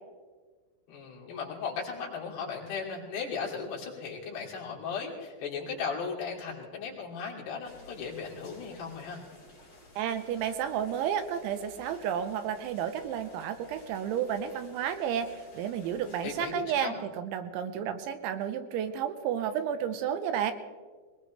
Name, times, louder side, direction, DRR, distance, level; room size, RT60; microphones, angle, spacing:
voice 1, 0.9-9.2 16.2-17.0, left 5 dB, 60° left, -3 dB, 4.8 m, -36 dB
sound 1, 7.6-16.5, left 2 dB, 40° left, 5.9 m, -54 dB
voice 2, 10.0-20.5, right 9 dB, 85° right, 8 dB, 3.2 m, -32 dB
21.5 x 20.5 x 3.2 m, 1.5 s
omnidirectional pair, 5.4 m